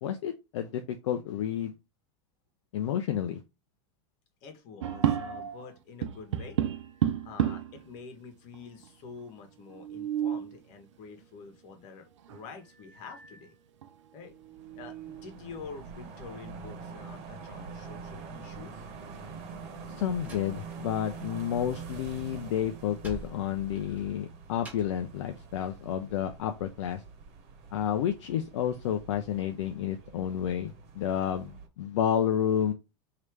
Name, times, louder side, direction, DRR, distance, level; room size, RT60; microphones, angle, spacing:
voice 1, 0.0-1.7 2.7-3.4 19.9-27.0 27.7-32.7, left 9 dB, 70° left, 0.6 m, -30 dB
voice 2, 4.4-6.6 7.2-13.5 14.1-14.3 14.7-18.9, left 5 dB, 55° left, 1.4 m, -47 dB
sound 1, 4.8-5.7 6.0-7.8 8.5-8.6 8.8-8.9 9.6-10.5 12.3-12.4 12.9-13.4 13.8-13.9 14.4-15.3, right 10 dB, 80° right, 0.6 m, -31 dB
sound 2, 14.3-31.7, right 5 dB, 45° right, 1.3 m, -45 dB
Slam, 20.0-21.3 21.6-25.1, right 3 dB, 10° right, 1.4 m, -49 dB
3.2 x 2.9 x 4.6 m
hypercardioid pair, 110°, 15 cm